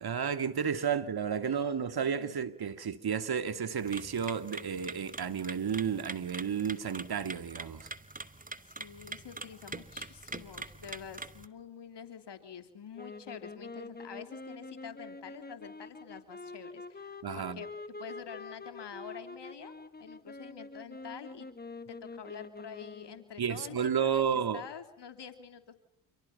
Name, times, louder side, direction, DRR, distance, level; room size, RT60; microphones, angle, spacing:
voice 1, 0.0-7.9 17.2-17.6 23.4-24.6, right 7 dB, 50° right, 2.9 m, -32 dB
voice 2, 1.5-2.5 8.6-17.7 18.0-21.5 21.9-25.7, left 7 dB, 55° left, 3.3 m, -47 dB
sound 1, 3.8-11.5, right 3 dB, 15° right, 2.6 m, -44 dB
sound 2, 12.9-23.3, left 3 dB, 20° left, 2.2 m, -46 dB
29.5 x 29.0 x 5.9 m
supercardioid pair, 60°, 49 cm